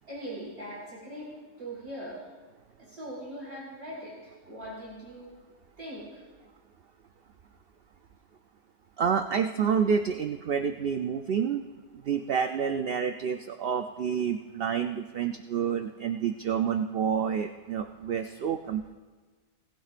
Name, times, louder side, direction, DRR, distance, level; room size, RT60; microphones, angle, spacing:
voice 1, 0.0-2.3 2.8-5.3 5.8-6.2, right 1 dB, 45° right, -6 dB, 4.7 m, -41 dB
voice 2, 9.0-11.6 11.9-18.9, right 7 dB, 65° right, 7 dB, 0.6 m, -28 dB
19.0 x 15.0 x 2.5 m, 1.4 s
omnidirectional pair, 1.5 m